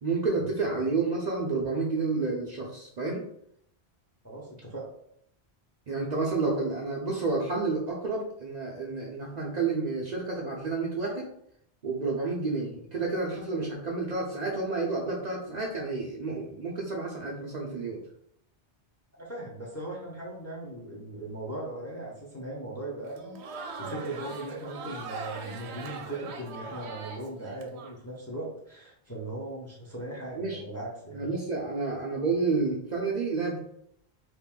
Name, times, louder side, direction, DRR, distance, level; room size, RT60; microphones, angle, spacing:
voice 1, 0.0-3.2 5.9-11.3 11.8-18.0 30.3-30.6 31.1-33.6, right 3 dB, 50° right, -3 dB, 0.6 m, -30 dB
voice 2, 4.2-4.8 19.2-31.3, right 1 dB, 15° left, -4 dB, 0.6 m, -39 dB
Crowd, 23.1-27.9, right 4 dB, 80° right, 0.8 m, -40 dB
2.9 x 2.5 x 3.6 m, 0.71 s
omnidirectional pair, 1.1 m